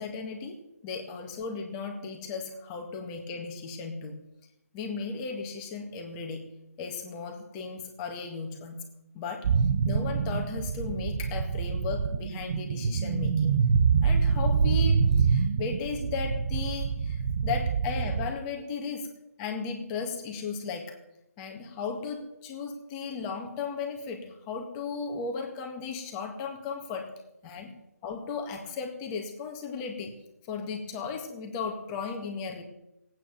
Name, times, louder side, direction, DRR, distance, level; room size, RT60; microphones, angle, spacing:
voice 1, 0.0-4.2 4.7-6.4 6.8-8.8 9.1-9.5 9.9-13.6 14.0-19.1 19.4-21.0 21.4-30.2 30.4-32.6, left 5 dB, 20° left, 2 dB, 2.0 m, -36 dB
sound 1, 9.4-18.3, right 6 dB, 40° right, 0.8 m, -26 dB
18.0 x 9.1 x 6.9 m, 0.86 s
figure-of-eight pair, 155°, 9 cm